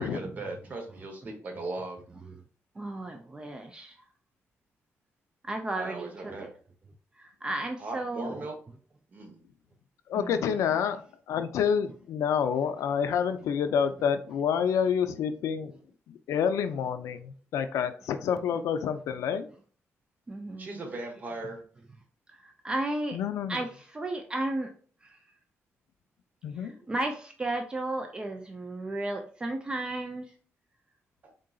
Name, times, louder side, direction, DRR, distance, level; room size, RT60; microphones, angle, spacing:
voice 1, 0.0-2.0 5.8-6.5 7.8-8.6 9.1-9.4 20.6-21.6 31.2-31.3, right 2 dB, 35° right, 3 dB, 0.9 m, -38 dB
voice 2, 2.8-4.0 5.4-6.5 7.2-8.4 10.1-10.5 20.3-20.8 22.4-23.2 23.5-24.7 25.0-25.1 26.6-30.3, right 2 dB, 15° right, 4 dB, 0.4 m, -34 dB
voice 3, 10.1-11.0 11.3-15.7 16.1-19.5 23.1-23.6 26.4-26.7, left 7 dB, 85° left, 10 dB, 0.4 m, -28 dB
3.8 x 3.7 x 2.3 m, 0.42 s
wide cardioid pair, 165°, 5 cm